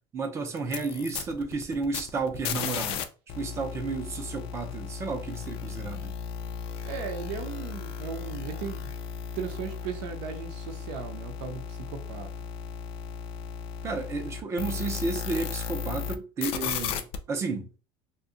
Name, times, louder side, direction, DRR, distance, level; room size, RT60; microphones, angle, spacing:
voice 1, 0.1-3.0 3.4-6.1 13.8-17.7, right 3 dB, 20° right, 0.6 m, -32 dB
sound 1, 0.6-3.0 3.3-16.2 16.4-17.2, left 7 dB, 40° left, 0.4 m, -35 dB
voice 2, 6.8-8.9 9.3-12.3, right 7 dB, 65° right, 0.7 m, -37 dB
2.6 x 2.2 x 3.7 m
cardioid pair, 180°, 14 cm